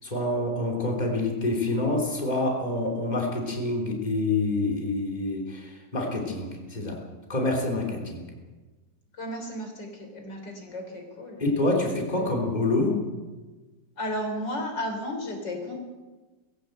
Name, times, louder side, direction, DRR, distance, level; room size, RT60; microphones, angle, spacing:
voice 1, 0.0-7.0 7.3-8.2 11.4-12.9, left 2 dB, 25° left, 0 dB, 3.4 m, -27 dB
voice 2, 9.2-11.4 12.1-12.3 14.0-15.8, left 1 dB, 80° left, 4 dB, 4.4 m, -33 dB
21.0 x 16.0 x 7.9 m, 1.3 s
omnidirectional pair, 1.9 m